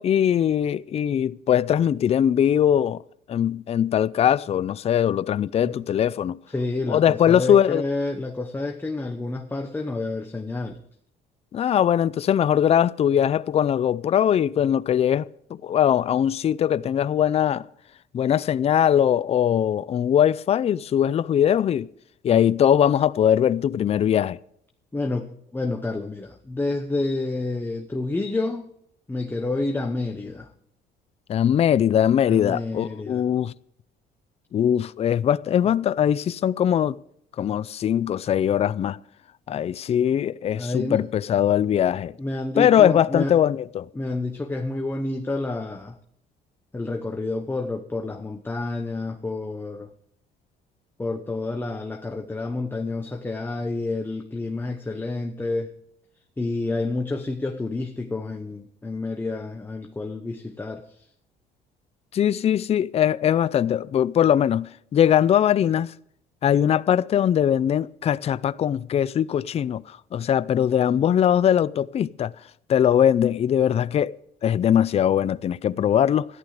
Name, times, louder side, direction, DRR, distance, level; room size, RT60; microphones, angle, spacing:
voice 1, 0.0-3.0 3.3-6.4 6.9-7.8 11.5-15.3 15.6-17.7 18.1-21.9 22.2-24.4 31.3-33.5 34.5-37.0 37.4-39.0 39.5-42.1 42.6-43.9 62.1-65.9 66.4-72.3 72.7-74.1 74.4-76.3, left 9 dB, 35° left, 0.4 m, -21 dB
voice 2, 6.5-10.8 24.9-25.3 25.5-28.7 29.1-30.5 32.3-33.2 40.6-41.0 42.2-43.3 43.9-46.0 46.7-49.9 51.0-55.7 56.4-61.1, left 2 dB, 10° left, 1.0 m, -29 dB
13.5 x 11.5 x 5.0 m
cardioid pair, 110°, 17 cm